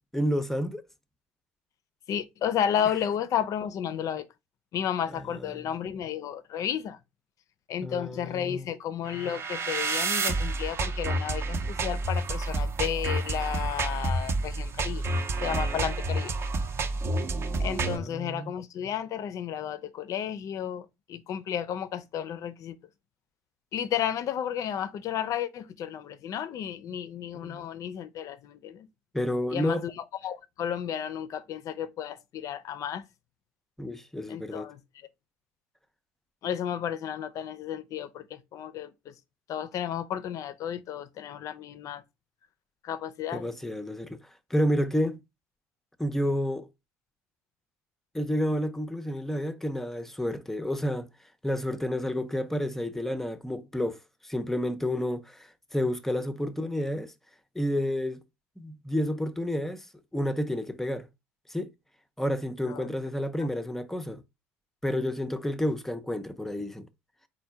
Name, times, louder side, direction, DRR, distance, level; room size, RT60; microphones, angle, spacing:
voice 1, 0.1-0.8 5.2-5.3 7.8-8.7 17.8-18.5 27.3-27.6 29.1-29.8 33.8-34.7 43.3-44.2 44.5-45.2 46.0-46.7 48.1-51.1 51.4-54.0 54.2-57.1 57.6-58.2 58.6-59.9 60.1-61.1 61.5-61.7 62.2-64.2 64.8-66.9, equal, 5° left, 0.5 m, -30 dB
voice 2, 2.1-4.3 4.7-7.0 7.7-15.0 15.4-16.3 17.6-22.8 23.7-28.9 29.5-33.0 34.3-34.8 36.4-39.1 39.5-42.0 42.8-43.5 56.4-56.5 62.7-62.9 63.4-63.5, left 9 dB, 50° left, 0.5 m, -32 dB
sound 1, 9.1-18.0, right 2 dB, 40° right, 0.7 m, -29 dB
4.3 x 2.2 x 4.5 m
hypercardioid pair, 65°, 7 cm